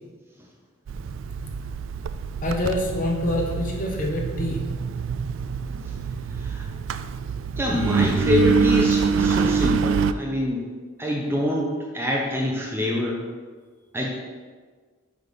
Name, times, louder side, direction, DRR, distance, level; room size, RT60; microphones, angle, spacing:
Engine, 0.9-10.1, right 5 dB, 70° right, 0.3 m, -25 dB
voice 1, 2.4-4.6, left 1 dB, 40° left, 0 dB, 1.0 m, -26 dB
voice 2, 6.3-6.7 7.6-10.7 11.0-13.2 13.9-14.1, left 1 dB, 10° right, -1 dB, 0.6 m, -26 dB
7.5 x 3.5 x 5.5 m, 1.5 s
head